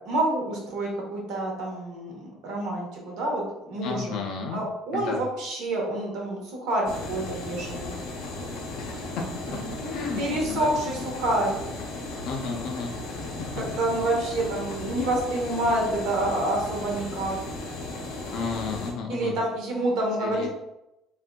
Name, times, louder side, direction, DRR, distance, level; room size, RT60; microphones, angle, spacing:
voice 1, 0.0-4.2 4.5-8.0 9.5-11.5 13.6-17.3 19.1-20.5, right 1 dB, 70° right, -1 dB, 1.0 m, -28 dB
voice 2, 3.8-4.6 4.9-5.2 8.8-9.2 9.9-10.7 12.2-13.6 18.3-19.4 20.2-20.5, left 4 dB, 60° left, 1 dB, 0.4 m, -33 dB
sound 1, 6.8-18.9, left 2 dB, 90° left, 0.8 m, -36 dB
3.6 x 2.5 x 2.2 m, 0.89 s
cardioid pair, 150°, 0 cm